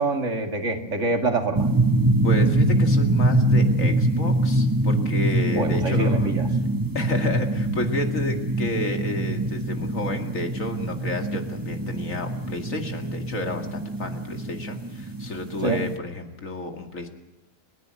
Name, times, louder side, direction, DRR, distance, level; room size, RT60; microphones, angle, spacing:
voice 1, 0.0-1.7 5.5-6.5 15.6-15.8, right 3 dB, 65° right, 4 dB, 2.5 m, -25 dB
sound 1, 1.5-16.0, right 1 dB, 15° right, 1.1 m, -24 dB
voice 2, 2.2-6.3 6.9-17.1, left 2 dB, 80° left, 4 dB, 2.6 m, -31 dB
29.0 x 10.5 x 9.5 m, 1.1 s
omnidirectional pair, 1.4 m